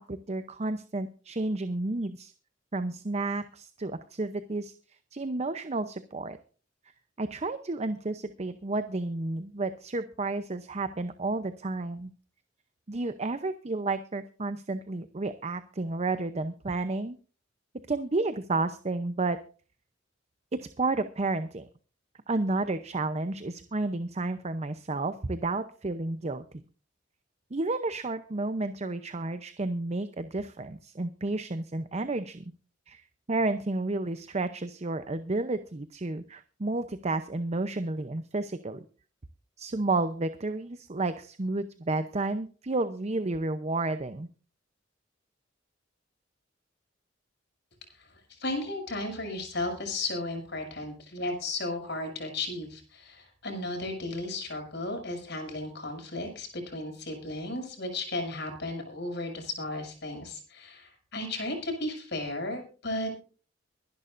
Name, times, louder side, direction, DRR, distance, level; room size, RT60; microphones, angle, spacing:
voice 1, 0.0-2.3 2.7-4.7 5.1-6.4 7.2-12.1 12.9-17.2 17.9-19.4 20.5-21.7 22.3-26.4 27.5-32.4 32.9-33.0 33.3-38.9 39.6-44.3, right 2 dB, 35° right, 11 dB, 0.7 m, -31 dB
voice 2, 47.9-63.2, left 2 dB, 60° left, 4 dB, 6.5 m, -35 dB
24.0 x 11.0 x 2.6 m, 0.38 s
head